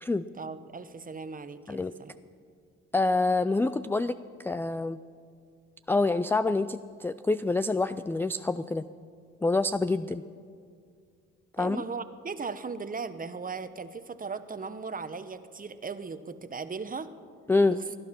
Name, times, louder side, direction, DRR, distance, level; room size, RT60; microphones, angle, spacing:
voice 1, 0.3-2.1 11.6-17.1 17.7-17.8, right 5 dB, 25° right, 12 dB, 1.0 m, -38 dB
voice 2, 2.9-4.1 4.4-5.0 5.9-8.9 9.4-10.2 11.6-11.8 17.5-17.8, left 3 dB, 5° left, 13 dB, 0.3 m, -26 dB
19.0 x 11.5 x 6.1 m, 2.2 s
supercardioid pair, 65°, 31 cm